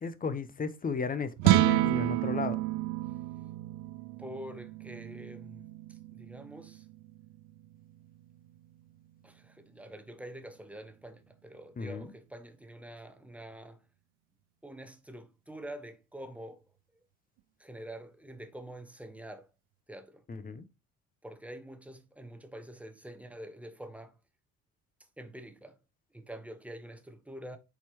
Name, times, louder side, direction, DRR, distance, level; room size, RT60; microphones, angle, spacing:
voice 1, 0.0-2.6 11.8-12.1 20.3-20.6, left 4 dB, 20° left, 0.8 m, -34 dB
sound 1, 1.4-7.7, right 16 dB, 50° right, 0.5 m, -30 dB
voice 2, 4.2-6.9 9.2-13.8 14.6-16.7 17.6-19.5 19.9-20.2 21.2-24.2 25.2-25.8 26.1-27.6, right 1 dB, 5° right, 1.0 m, -46 dB
8.0 x 4.4 x 3.0 m
figure-of-eight pair, 55°, 43 cm